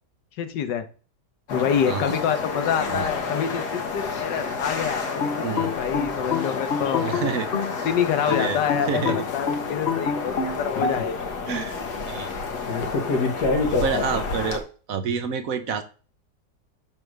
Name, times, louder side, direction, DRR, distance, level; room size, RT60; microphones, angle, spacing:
voice 1, 0.4-0.9 1.5-7.0 7.8-11.5, left 8 dB, 90° left, 1.6 m, -27 dB
sound 1, 1.5-14.6, left 4 dB, 70° left, 1.9 m, -29 dB
sound 2, 5.2-7.8 8.3-11.0, left 6 dB, 50° left, 0.7 m, -27 dB
voice 2, 7.0-7.5 8.3-9.2 11.5-11.8 12.0-12.3 13.7-15.8, right 6 dB, 60° right, 1.1 m, -28 dB
9.4 x 3.4 x 6.4 m
omnidirectional pair, 1.8 m